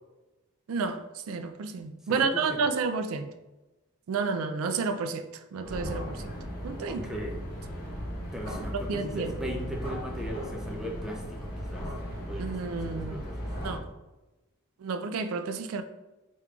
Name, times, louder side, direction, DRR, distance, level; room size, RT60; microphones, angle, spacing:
voice 1, 0.7-3.3 4.1-6.2 6.6-7.1 8.7-9.3 12.4-13.2 13.6-13.8 14.8-15.8, right 4 dB, 80° right, 0.4 m, -31 dB
voice 2, 2.1-2.6 6.9-7.4 8.3-11.9 12.3-13.5, equal, ahead, 0.4 m, -38 dB
sound 1, 5.6-13.8, equal, 45° left, 1.5 m, -37 dB
4.3 x 3.7 x 2.3 m
head